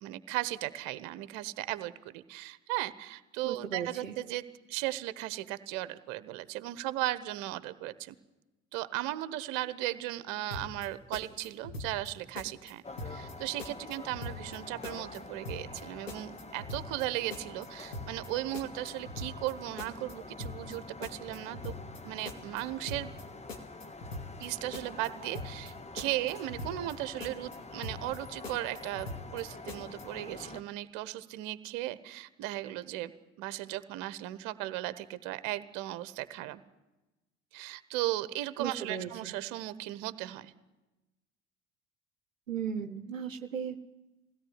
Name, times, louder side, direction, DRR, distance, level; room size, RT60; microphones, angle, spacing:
voice 1, 0.0-8.2 8.7-12.8 13.1-21.7 22.0-23.1 24.4-33.1 33.4-36.6 37.5-40.5, right 15 dB, 60° right, 14 dB, 1.1 m, -36 dB
voice 2, 3.4-4.1 38.6-39.3 42.5-43.8, right 7 dB, 85° right, 8 dB, 0.9 m, -36 dB
sound 1, 10.5-10.9 11.1-12.1 12.4-12.7 13.0-13.3 13.6-14.6 14.8-15.2 15.4-15.8 16.1-17.0 17.3-17.7 17.9-18.3 18.5-19.5 19.8-20.1 20.4-20.8 21.0-22.0 22.3-22.6 22.9-23.2 23.5-24.5 24.7-25.1 25.3-25.7 26.0-26.9 27.2-27.6 27.8-28.2 28.4-29.4 29.7-30.0, left 2 dB, 85° left, 2.3 m, -41 dB
sound 2, 12.8-30.6, left 3 dB, 15° left, 1.2 m, -47 dB
21.0 x 17.0 x 9.6 m, 1.1 s
figure-of-eight pair, 60°, 38 cm